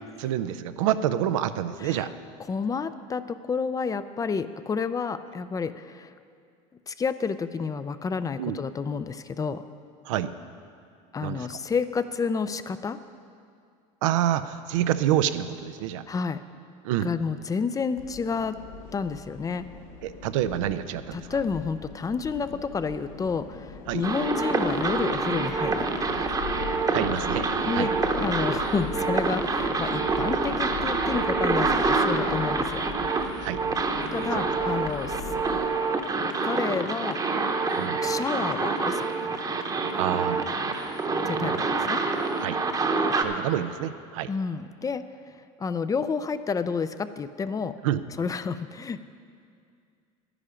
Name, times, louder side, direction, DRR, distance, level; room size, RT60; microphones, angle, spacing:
voice 1, 0.2-2.1 8.4-8.6 10.0-10.3 11.2-11.6 14.0-16.0 16.8-17.1 20.0-21.3 23.9-24.0 26.9-27.9 33.4-33.6 34.3-34.5 37.8-38.0 40.0-40.4 41.4-41.7 42.4-42.6 43.2-44.3 47.8-48.0, right 11 dB, 90° right, 11 dB, 0.5 m, -27 dB
voice 2, 2.5-6.1 6.9-9.6 11.1-13.0 16.1-16.4 17.0-18.6 18.9-19.7 21.1-25.9 26.2-26.3 27.7-27.9 28.2-32.8 34.1-35.3 36.4-37.2 38.0-39.1 41.2-42.0 44.3-47.7 48.2-49.0, left 5 dB, 20° left, 12 dB, 0.4 m, -30 dB
sound 1, 18.0-35.6, left 5 dB, 85° left, 1.6 m, -40 dB
sound 2, 24.0-43.2, right 3 dB, 25° right, 0.9 m, -27 dB
11.5 x 9.9 x 5.1 m, 2.3 s
supercardioid pair, 105°, 16 cm